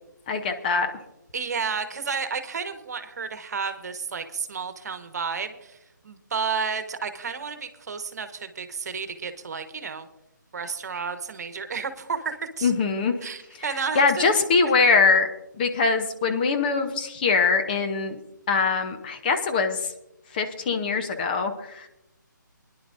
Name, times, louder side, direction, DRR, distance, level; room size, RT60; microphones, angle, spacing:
voice 1, 0.3-0.9 12.6-13.1 13.9-15.3 15.6-18.2 18.5-19.8 20.3-21.9, left 4 dB, 25° left, 6 dB, 0.9 m, -22 dB
voice 2, 1.3-5.8 6.0-10.1 10.5-12.7 13.2-14.3, right 5 dB, 55° right, 9 dB, 1.3 m, -31 dB
22.0 x 10.5 x 2.6 m, 0.88 s
hypercardioid pair, 155°, 11 cm